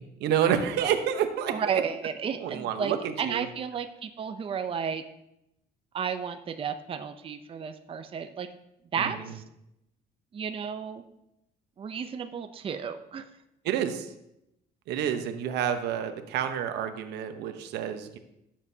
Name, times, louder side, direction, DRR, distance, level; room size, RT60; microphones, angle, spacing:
voice 1, 0.0-1.5 2.4-3.5 9.0-9.3 13.6-14.1 14.9-18.2, right 9 dB, 80° right, 8 dB, 0.9 m, -29 dB
voice 2, 1.5-5.0 5.9-8.5 8.9-9.4 10.3-11.0 11.8-13.2, right 7 dB, 35° right, 8 dB, 0.6 m, -32 dB
15.5 x 7.3 x 2.8 m, 0.84 s
cardioid pair, 110°, 17 cm